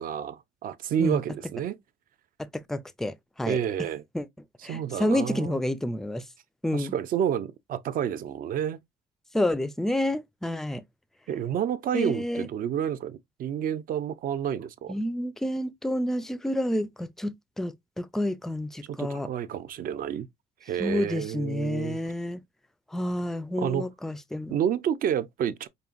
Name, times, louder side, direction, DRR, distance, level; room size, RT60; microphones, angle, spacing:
voice 1, 0.0-1.8 3.5-4.0 4.7-5.6 6.7-8.8 11.3-14.9 18.8-20.3 20.6-22.0 23.6-23.9 24.5-25.7, right 9 dB, 55° right, 0.5 m, -29 dB
voice 2, 2.4-3.6 4.1-4.3 4.6-6.2 6.6-6.9 9.3-10.8 11.9-12.5 14.9-19.3 20.8-22.4 22.9-24.6, left 1 dB, ahead, 0.4 m, -29 dB
5.3 x 2.5 x 2.4 m
cardioid pair, 110°, 17 cm